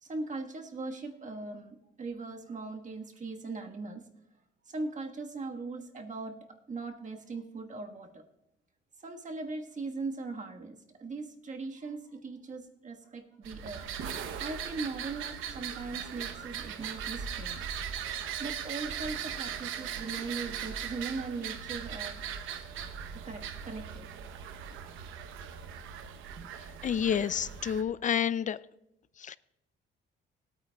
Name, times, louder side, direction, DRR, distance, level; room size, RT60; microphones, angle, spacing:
voice 1, 0.0-4.1 4.7-6.4 6.7-8.2 9.0-13.9 14.4-17.6 18.4-22.2 23.2-24.1 24.7-24.8, right 3 dB, 40° right, 3 dB, 1.4 m, -39 dB
sound 1, 13.4-27.8, right 8 dB, 90° right, 0.9 m, -39 dB
voice 2, 26.8-28.6 29.2-29.4, left 8 dB, 40° left, 18 dB, 0.4 m, -29 dB
20.5 x 9.0 x 2.3 m, 0.86 s
cardioid pair, 90°, 20 cm